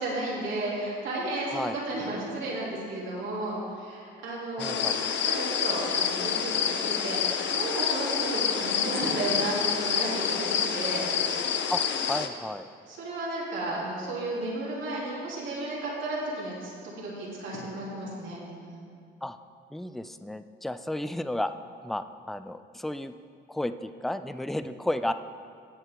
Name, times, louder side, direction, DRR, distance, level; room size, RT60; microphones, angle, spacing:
voice 1, 0.0-4.8 5.2-10.5 10.7-11.0 12.9-18.8, right 2 dB, 75° right, -6 dB, 3.0 m, -33 dB
sound 1, 4.6-12.3, left 7 dB, 65° left, 0.7 m, -28 dB
voice 2, 4.6-5.0 11.7-11.8 12.1-12.7 19.2-19.4 19.7-21.5 21.8-23.1 23.5-25.1, left 1 dB, ahead, 11 dB, 0.4 m, -32 dB
18.0 x 6.7 x 3.7 m, 2.2 s
cardioid pair, 90°, 20 cm